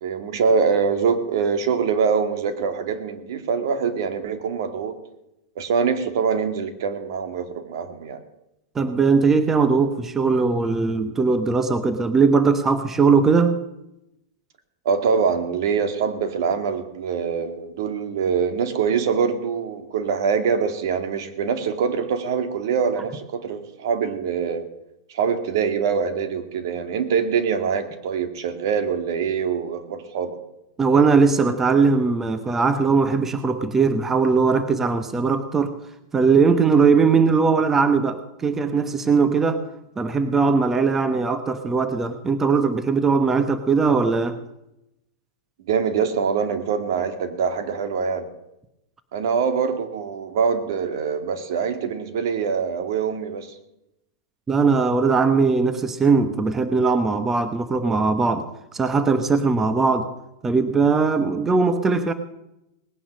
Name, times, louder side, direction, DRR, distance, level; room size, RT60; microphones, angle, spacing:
voice 1, 0.0-4.9 5.6-8.2 14.9-24.7 25.1-30.4 45.7-48.3 49.1-53.5, right 6 dB, 70° right, 8 dB, 2.1 m, -24 dB
voice 2, 8.7-13.6 30.8-35.8 36.1-39.6 40.0-44.4 54.5-58.5 58.7-60.1 60.4-62.1, right 4 dB, 15° right, 10 dB, 1.0 m, -19 dB
19.0 x 10.0 x 6.4 m, 0.87 s
supercardioid pair, 140°, 2 cm